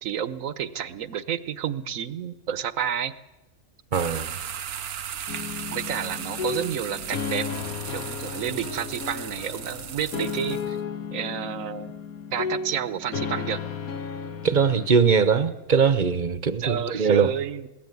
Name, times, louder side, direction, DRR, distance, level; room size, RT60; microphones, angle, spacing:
voice 1, 0.0-3.1 5.7-7.4 7.9-10.8 11.1-11.9 12.3-13.6 16.6-17.7, right 8 dB, 65° right, 1.3 m, -30 dB
voice 2, 3.9-4.3 14.4-17.3, right 6 dB, 35° right, 1.0 m, -21 dB
sound 1, 3.9-10.7, right 8 dB, 85° right, 1.5 m, -36 dB
sound 2, 5.3-14.9, left 5 dB, 75° left, 1.7 m, -34 dB
21.5 x 17.0 x 9.4 m
omnidirectional pair, 1.5 m